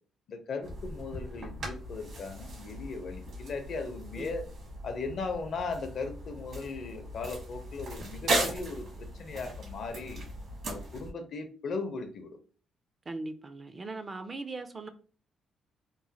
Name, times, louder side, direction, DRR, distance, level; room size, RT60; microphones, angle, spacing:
voice 1, 0.3-4.4 4.8-10.3 10.7-12.4, left 4 dB, 60° left, 0.5 m, -38 dB
sound 1, 0.6-11.1, right 2 dB, 65° right, 1.2 m, -37 dB
voice 2, 13.1-14.9, right 3 dB, 30° right, 0.4 m, -39 dB
3.0 x 2.1 x 2.7 m
cardioid pair, 90°, 0 cm